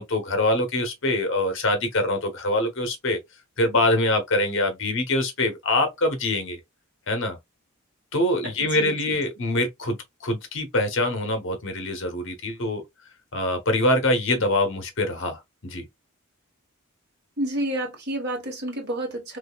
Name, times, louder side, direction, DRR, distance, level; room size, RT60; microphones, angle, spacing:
voice 1, 0.0-3.2 3.6-6.6 7.1-7.4 8.1-10.0 10.2-12.8 13.3-15.8, left 1 dB, 60° left, 1.1 m, -24 dB
voice 2, 8.4-9.2 17.4-19.4, right 1 dB, 50° right, 1.4 m, -30 dB
3.7 x 3.2 x 2.3 m
head